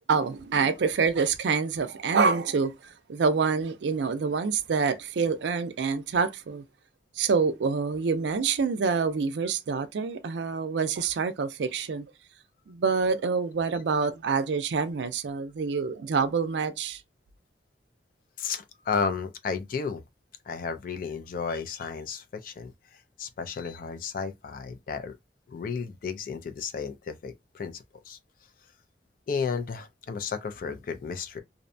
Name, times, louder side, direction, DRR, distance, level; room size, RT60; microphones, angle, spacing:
voice 1, 0.1-2.7 3.1-6.6 7.2-12.1 12.7-17.0, right 5 dB, 70° right, 0.4 m, -26 dB
voice 2, 18.4-20.0 20.5-25.2 25.5-28.2 29.3-31.4, left 5 dB, 50° left, 0.4 m, -33 dB
2.6 x 2.1 x 2.6 m
head